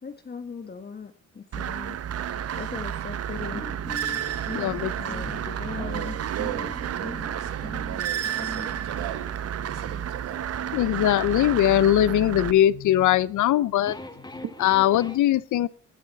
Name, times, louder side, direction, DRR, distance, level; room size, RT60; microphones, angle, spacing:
voice 1, 0.0-2.0 2.5-3.6 5.0-6.2, left 5 dB, 30° left, 1.4 m, -39 dB
sound 1, 1.5-12.5, right 9 dB, 55° right, 1.0 m, -31 dB
sound 2, 3.5-15.2, left 2 dB, 15° left, 2.9 m, -43 dB
voice 2, 4.5-4.9 10.7-14.0 14.6-15.7, left 12 dB, 75° left, 0.8 m, -21 dB
voice 3, 5.8-9.3 9.6-10.4 14.4-14.5, right 12 dB, 85° right, 1.4 m, -37 dB
20.0 x 12.0 x 4.1 m
cardioid pair, 90°, 30 cm